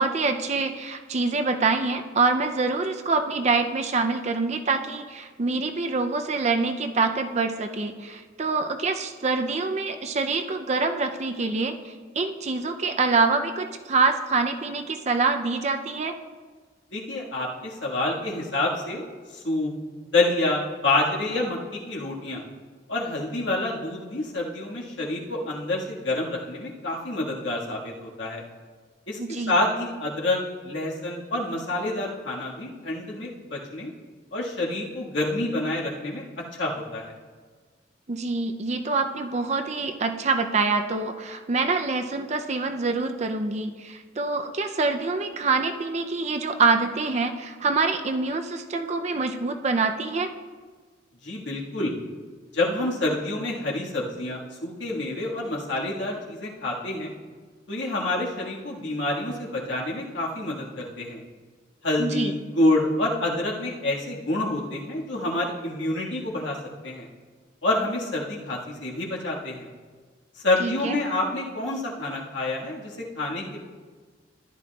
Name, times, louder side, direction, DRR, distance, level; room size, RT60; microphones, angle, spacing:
voice 1, 0.0-16.1 29.2-29.5 38.1-50.3 62.0-62.3 70.6-71.0, right 4 dB, 35° right, 6 dB, 0.5 m, -25 dB
voice 2, 16.9-19.0 19.3-19.7 20.1-22.4 22.9-28.4 29.1-30.4 30.6-33.9 34.3-36.2 36.5-37.1 51.2-51.9 52.5-57.1 57.7-61.2 61.8-66.6 66.8-67.1 67.6-69.7 70.4-73.6, left 2 dB, 80° left, -3 dB, 1.7 m, -27 dB
14.0 x 11.0 x 2.3 m, 1.5 s
head